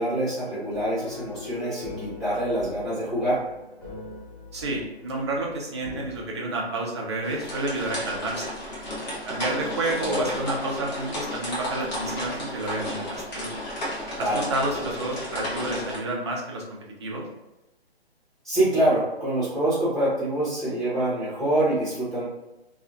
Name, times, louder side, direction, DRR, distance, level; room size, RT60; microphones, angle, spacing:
voice 1, 0.0-3.4 10.0-10.2 14.1-14.4 18.4-22.2, right 1 dB, ahead, -12 dB, 0.9 m, -25 dB
sound 1, 0.7-6.2, left 3 dB, 20° left, 0.6 m, -41 dB
voice 2, 4.5-8.4 9.3-13.5 14.2-16.6 17.0-17.3, right 2 dB, 25° right, -2 dB, 0.4 m, -30 dB
sound 2, 7.2-16.0, left 1 dB, 40° left, 1.0 m, -33 dB
2.6 x 2.3 x 2.5 m, 0.94 s
hypercardioid pair, 150°, 32 cm